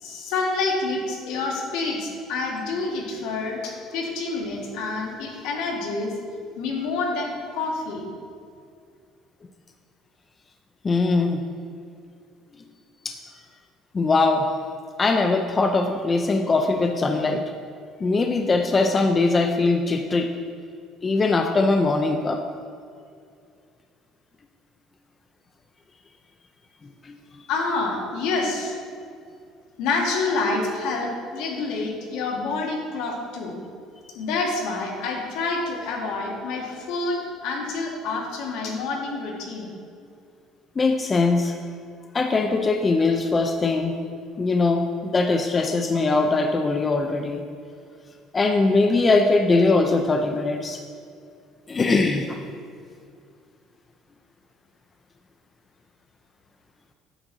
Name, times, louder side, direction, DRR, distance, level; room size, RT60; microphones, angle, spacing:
voice 1, 0.0-6.2 6.6-8.1 27.5-28.8 29.8-33.6 34.1-39.7, left 3 dB, 75° left, 0 dB, 1.5 m, -28 dB
voice 2, 10.8-11.4 13.0-13.2 13.9-14.5 15.0-17.4 18.0-20.3 21.0-22.4 27.0-27.1 40.8-41.6 42.1-44.0 44.4-47.5 48.3-50.8 51.7-52.4, left 3 dB, 20° left, 5 dB, 0.4 m, -21 dB
8.8 x 3.9 x 6.2 m, 2.3 s
cardioid pair, 170°, 0 cm